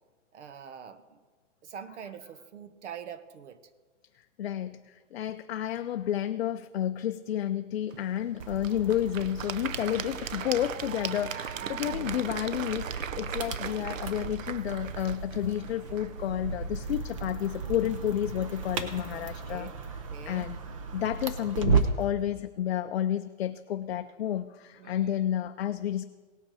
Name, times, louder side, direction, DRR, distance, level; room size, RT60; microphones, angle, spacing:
voice 1, 0.3-1.2 1.6-3.6 11.6-12.2 19.1-19.7 20.1-20.5 24.8-25.3, right 8 dB, 65° right, 12 dB, 1.1 m, -45 dB
voice 2, 4.4-19.7 20.3-20.6 20.9-26.0, left 11 dB, 55° left, 8 dB, 0.5 m, -31 dB
Applause / Crowd, 7.9-17.0, right 9 dB, 90° right, 0.7 m, -39 dB
sound 1, 8.4-22.1, right 5 dB, 25° right, 0.6 m, -35 dB
18.0 x 6.4 x 4.8 m, 1.4 s
hypercardioid pair, 165°, 38 cm